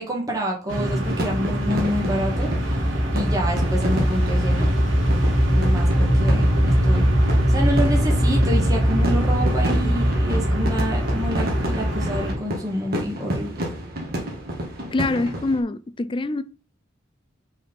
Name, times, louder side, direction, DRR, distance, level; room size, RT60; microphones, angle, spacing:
voice 1, 0.0-2.7 3.1-4.7 5.1-7.1 7.5-13.6, equal, 20° right, 1.6 m, -28 dB
sound 1, 0.7-12.3, equal, 85° right, 2.0 m, -21 dB
sound 2, 1.1-15.6, equal, 50° right, 1.7 m, -31 dB
voice 2, 14.9-16.4, left 2 dB, 25° left, 0.4 m, -25 dB
5.0 x 4.3 x 5.4 m
head